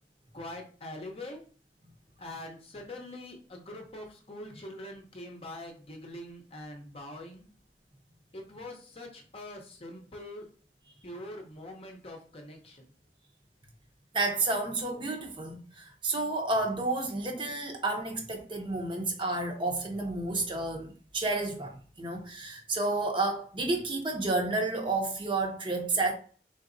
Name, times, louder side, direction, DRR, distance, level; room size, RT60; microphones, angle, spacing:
voice 1, 0.3-1.4 2.2-7.5 8.3-10.5 11.0-12.9, left 1 dB, 35° left, 0.8 m, -43 dB
voice 2, 14.1-26.1, right 2 dB, 30° right, 0.8 m, -31 dB
3.9 x 3.9 x 2.6 m
head